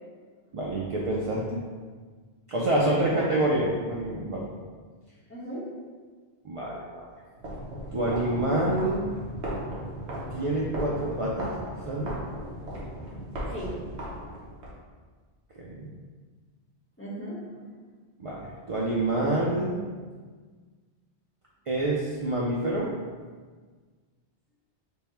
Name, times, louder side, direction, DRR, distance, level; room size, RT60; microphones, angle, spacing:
voice 1, 0.5-1.6 2.5-4.5 6.4-7.0 7.9-9.0 10.3-11.5 11.9-12.2 15.6-15.9 18.2-19.8 21.7-22.9, right 1 dB, 60° right, -5 dB, 0.3 m, -27 dB
voice 2, 2.7-3.4 5.3-5.6 13.5-13.7 17.0-17.7, right 1 dB, 15° left, -8 dB, 0.8 m, -36 dB
sound 1, 7.4-14.7, equal, 85° right, 1.1 m, -36 dB
3.5 x 2.1 x 4.3 m, 1.5 s
omnidirectional pair, 1.1 m